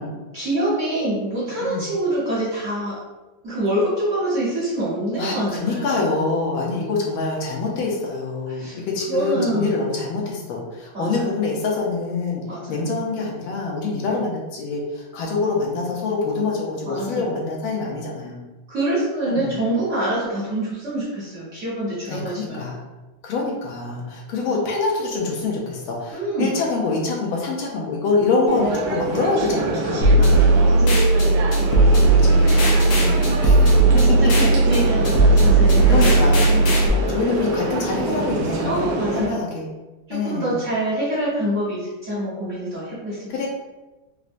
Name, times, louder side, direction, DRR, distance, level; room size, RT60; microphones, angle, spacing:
voice 1, 0.3-3.0 3.4-6.0 8.5-8.8 9.1-9.8 10.9-11.3 12.5-12.8 16.8-17.4 18.7-22.6 26.1-26.5 29.8-31.0 33.1-33.3 33.8-36.6 38.6-39.4 40.1-43.5, right 1 dB, 50° right, -9 dB, 1.1 m, -26 dB
voice 2, 5.2-12.4 12.7-18.4 19.3-19.5 22.1-22.8 23.2-30.3 31.2-31.3 31.9-33.6 33.9-34.6 35.9-36.6 37.1-38.8 39.1-39.7 40.1-40.6 43.3-43.5, left 3 dB, 90° left, -1 dB, 1.6 m, -25 dB
sound 1, 28.5-39.3, right 2 dB, 75° right, 1.0 m, -26 dB
sound 2, 30.0-36.9, right 2 dB, 70° left, 1.3 m, -16 dB
4.3 x 2.1 x 2.5 m, 1.1 s
omnidirectional pair, 2.2 m